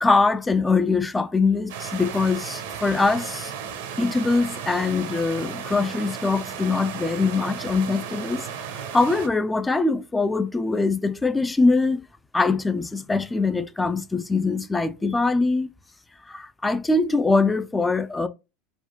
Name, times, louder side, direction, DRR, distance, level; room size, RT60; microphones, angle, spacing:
voice 1, 0.0-3.5 4.0-12.0 12.3-15.7 16.3-18.3, left 3 dB, 15° left, 0.3 m, -23 dB
sound 1, 1.7-9.3, right 8 dB, 70° right, 0.6 m, -34 dB
3.1 x 2.3 x 2.7 m
hypercardioid pair, 85°, 0 cm